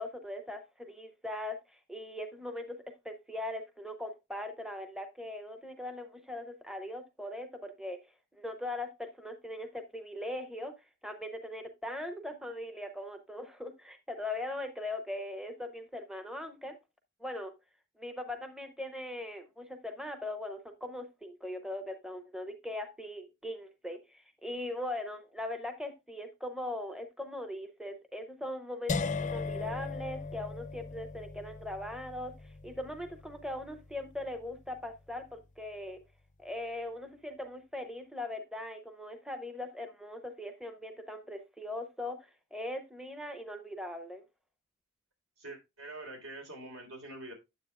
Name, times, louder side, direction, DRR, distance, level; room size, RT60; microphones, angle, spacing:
voice 1, 0.0-2.8 3.0-10.7 11.0-16.8 17.2-17.5 18.0-36.0 36.4-44.2, left 1 dB, 5° right, 6 dB, 0.6 m, -40 dB
sound 1, 28.9-34.8, left 4 dB, 35° left, 0.5 m, -39 dB
voice 2, 45.4-47.3, right 2 dB, 75° right, 4 dB, 3.6 m, -45 dB
9.3 x 7.7 x 2.3 m, 0.24 s
head